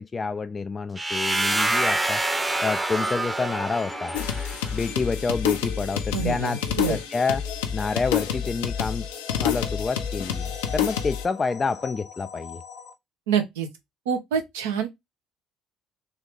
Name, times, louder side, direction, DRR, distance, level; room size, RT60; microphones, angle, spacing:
voice 1, 0.0-2.2 2.6-4.2 4.7-7.5 7.7-9.1 9.4-12.6, left 4 dB, 30° left, 0.3 m, -28 dB
sound 1, 1.0-4.8, right 2 dB, 15° right, 0.8 m, -26 dB
sound 2, 3.0-12.9, left 6 dB, 50° left, 1.0 m, -42 dB
sound 3, 4.1-11.2, left 8 dB, 80° left, 0.7 m, -28 dB
voice 2, 6.1-7.0 13.3-13.7 14.1-14.9, right 7 dB, 80° right, 0.9 m, -26 dB
3.6 x 3.3 x 3.1 m
hypercardioid pair, 55°, 0 cm